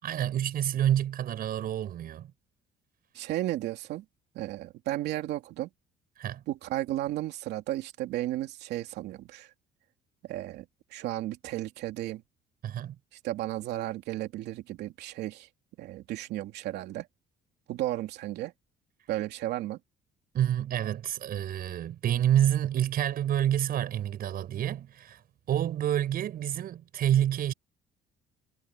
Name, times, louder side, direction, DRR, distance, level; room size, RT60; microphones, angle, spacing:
voice 1, 0.0-2.3 6.2-6.4 12.6-13.0 20.3-25.2 25.5-27.5, right 11 dB, 60° right, 7.4 m, -28 dB
voice 2, 3.1-4.0 4.3-5.7 6.5-9.5 10.3-10.6 10.9-12.2 13.2-15.5 15.8-17.1 17.7-18.5 19.1-19.8, right 15 dB, 80° right, 3.0 m, -34 dB
cardioid pair, 110°, 17 cm